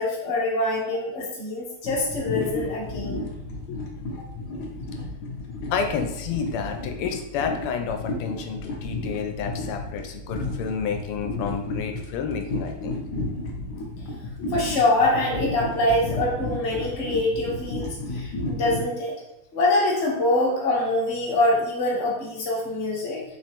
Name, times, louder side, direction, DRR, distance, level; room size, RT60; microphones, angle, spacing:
voice 1, 0.0-3.2 4.2-4.3 14.5-19.1 19.5-23.2, left 2 dB, 40° left, -4 dB, 1.0 m, -24 dB
sound 1, 1.8-18.9, left 2 dB, 70° left, 1.0 m, -33 dB
voice 2, 5.7-13.0 14.4-14.5, left 6 dB, 90° left, 4 dB, 1.5 m, -30 dB
3.8 x 3.1 x 2.9 m, 0.83 s
omnidirectional pair, 2.4 m